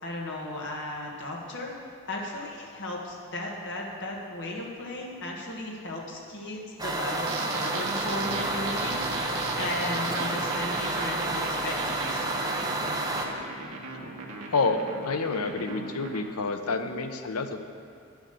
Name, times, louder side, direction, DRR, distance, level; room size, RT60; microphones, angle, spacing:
voice 1, 0.0-1.7 2.0-7.3 7.5-9.0 9.6-12.2, left 1 dB, 55° left, -2 dB, 1.5 m, -35 dB
sound 1, 6.8-13.3, right 2 dB, 15° right, 0.8 m, -30 dB
sound 2, 7.3-16.2, right 3 dB, 90° right, 1.4 m, -38 dB
voice 2, 14.5-17.6, left 3 dB, 90° left, 7 dB, 0.7 m, -28 dB
9.6 x 7.2 x 6.8 m, 2.4 s
head